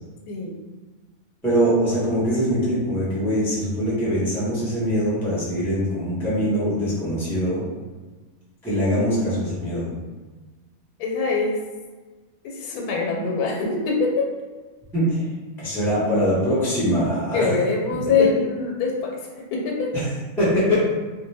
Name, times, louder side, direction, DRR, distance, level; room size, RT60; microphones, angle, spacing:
voice 1, 0.3-0.6 11.0-11.6 12.4-14.3 17.3-19.9, left 4 dB, 90° left, 0 dB, 1.1 m, -24 dB
voice 2, 1.4-7.6 8.6-9.9 14.9-15.2 15.6-17.5 18.2-18.3 19.9-20.0 20.4-20.8, equal, ahead, -9 dB, 0.8 m, -22 dB
2.5 x 2.2 x 3.2 m, 1.3 s
omnidirectional pair, 1.6 m